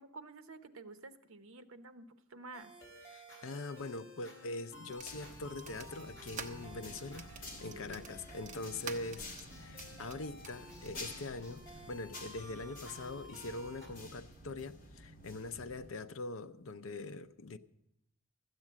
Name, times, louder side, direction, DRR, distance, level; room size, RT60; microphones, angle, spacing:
voice 1, 0.0-2.7 7.7-8.1, right 3 dB, 65° right, 0.8 m, -51 dB
sound 1, 2.5-13.9, equal, 15° left, 3.6 m, -54 dB
voice 2, 3.1-17.6, left 3 dB, 65° left, 0.6 m, -43 dB
sound 2, 4.9-10.9, right 5 dB, 35° right, 0.7 m, -50 dB
sound 3, 5.0-15.9, left 1 dB, 40° left, 2.4 m, -51 dB
13.0 x 8.2 x 7.4 m
head